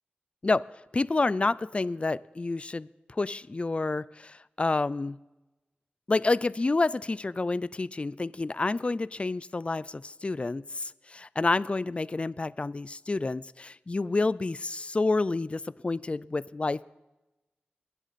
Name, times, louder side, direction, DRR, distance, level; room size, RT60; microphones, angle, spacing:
voice 1, 0.9-2.9 3.2-5.2 6.1-16.8, left 3 dB, 35° left, 18 dB, 0.4 m, -29 dB
22.0 x 8.2 x 4.1 m, 1.0 s
wide cardioid pair, 60°, 4 cm